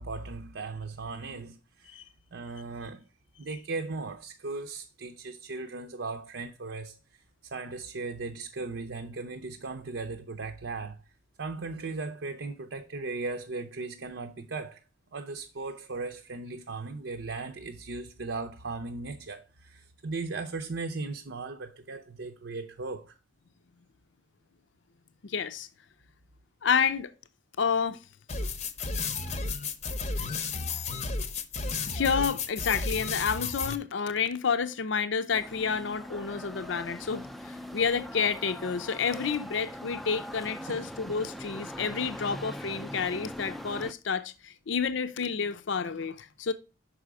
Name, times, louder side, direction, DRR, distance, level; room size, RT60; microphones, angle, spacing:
voice 1, 0.0-3.1 3.4-11.0 11.4-14.8 15.1-23.2 40.7-40.8, right 3 dB, 70° right, 0.6 m, -37 dB
voice 2, 25.2-25.7 26.6-27.1 27.6-28.0 31.9-46.5, left 6 dB, 75° left, 0.5 m, -29 dB
sound 1, 28.3-33.8, left 4 dB, 35° left, 0.7 m, -32 dB
sound 2, 35.3-43.9, equal, ahead, 0.4 m, -41 dB
6.1 x 5.0 x 4.7 m
head